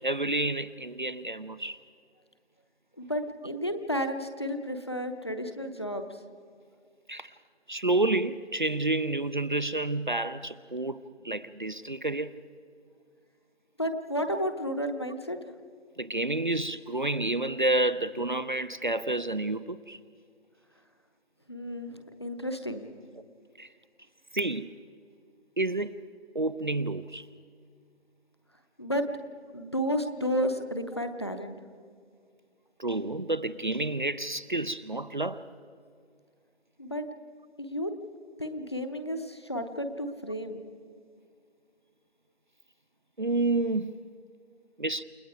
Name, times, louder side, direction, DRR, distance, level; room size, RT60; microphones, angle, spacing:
voice 1, 0.0-1.8 7.1-7.3 7.7-11.0 11.2-12.4 16.0-20.0 23.6-23.7 24.3-24.7 25.6-26.0 26.3-27.3 30.3-30.5 32.8-35.5 43.2-44.0 44.8-45.0, right 2 dB, 45° right, 0.6 m, -29 dB
voice 2, 3.0-6.1 13.8-15.4 21.5-22.8 28.8-29.0 29.5-31.6 36.8-37.1 37.6-37.9 38.4-40.6, equal, 25° left, 0.8 m, -32 dB
29.5 x 19.0 x 4.8 m
figure-of-eight pair, 165°, 33 cm